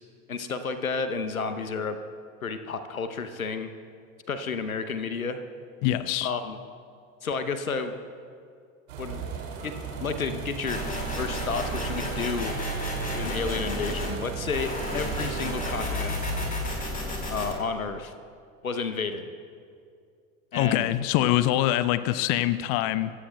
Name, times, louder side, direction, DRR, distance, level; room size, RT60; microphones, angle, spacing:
voice 1, 0.3-2.0 2.4-3.7 4.3-5.4 6.2-6.6 7.2-8.0 9.0-9.2 9.6-10.8 11.2-12.5 13.1-16.3 17.3-18.1 18.6-19.2 20.5-20.9, left 4 dB, 90° left, 10 dB, 0.9 m, -31 dB
voice 2, 5.8-6.3 20.6-23.1, left 14 dB, 50° left, 15 dB, 0.6 m, -24 dB
sound 1, 8.9-16.5, right 5 dB, 70° right, 2.8 m, -37 dB
sound 2, 10.7-14.1 14.5-17.5, equal, 20° left, 4.2 m, -32 dB
25.5 x 15.5 x 2.3 m, 2.3 s
figure-of-eight pair, 70°, 41 cm